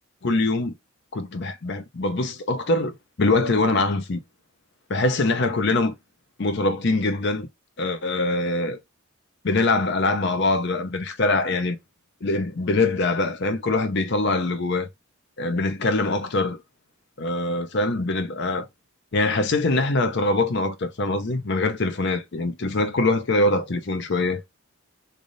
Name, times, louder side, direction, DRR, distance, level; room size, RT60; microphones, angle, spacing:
voice 1, 0.2-0.7 1.1-4.2 4.9-5.9 6.4-7.5 7.8-8.8 9.4-11.8 12.2-14.9 15.4-16.6 17.2-18.7 19.1-24.4, left 2 dB, 50° left, 0.7 m, -23 dB
3.4 x 2.4 x 3.9 m
head